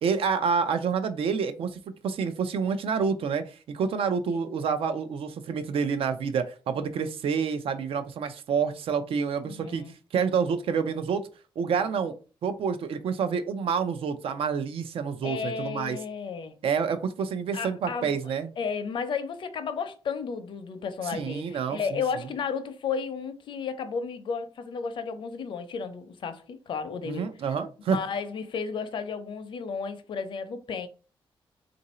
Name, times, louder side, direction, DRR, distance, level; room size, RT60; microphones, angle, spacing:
voice 1, 0.0-9.8 10.1-11.2 11.6-12.1 12.4-16.0 16.6-18.5 21.1-22.0 27.1-28.0, right 6 dB, 75° right, 0.6 m, -28 dB
voice 2, 9.5-9.9 11.6-11.9 15.2-16.6 17.5-18.2 18.6-27.3 27.9-30.9, left 6 dB, 60° left, 0.6 m, -33 dB
3.7 x 2.6 x 4.2 m
wide cardioid pair, 165°, 10 cm